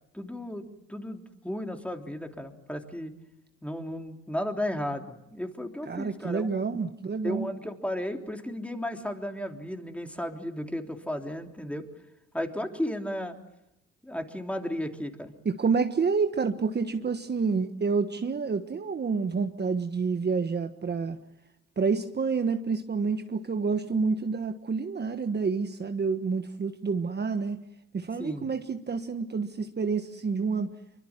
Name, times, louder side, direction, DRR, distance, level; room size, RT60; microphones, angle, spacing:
voice 1, 0.1-3.1 3.6-6.6 7.2-11.8 12.3-13.3 14.0-15.3 28.2-28.5, left 1 dB, 5° left, 4 dB, 3.3 m, -34 dB
voice 2, 5.8-7.5 15.4-21.2 21.8-27.6 27.9-30.7, right 5 dB, 35° right, 7 dB, 1.4 m, -28 dB
25.5 x 24.0 x 7.4 m, 0.86 s
cardioid pair, 90°, 30 cm